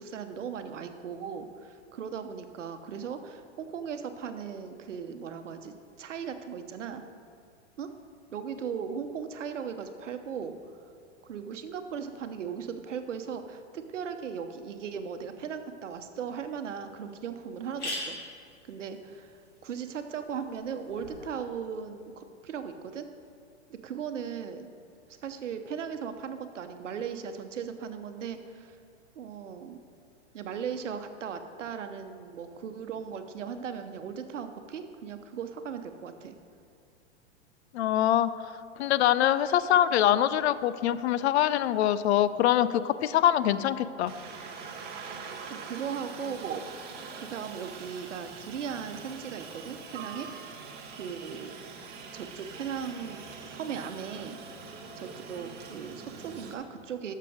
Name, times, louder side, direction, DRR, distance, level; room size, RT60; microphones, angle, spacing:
voice 1, 0.0-7.0 7.8-7.9 8.3-10.5 11.2-18.2 18.7-23.1 23.7-24.7 25.1-28.8 29.1-29.8 30.3-36.3 45.1-45.2 45.6-46.6 47.2-50.3 50.9-51.5 52.1-53.2 53.5-54.4 55.0-57.1, right 7 dB, 85° right, 8 dB, 1.0 m, -37 dB
sound 1, 16.2-16.3 16.8-16.9 17.1-17.2 17.5-21.3, left 1 dB, 25° left, 2.7 m, -42 dB
voice 2, 37.7-38.3 38.8-44.1, left 11 dB, 65° left, 15 dB, 0.6 m, -24 dB
Aircraft, 44.1-56.5, right 5 dB, 25° right, 1.3 m, -43 dB
12.5 x 6.7 x 5.1 m, 2.4 s
hypercardioid pair, 115°, 36 cm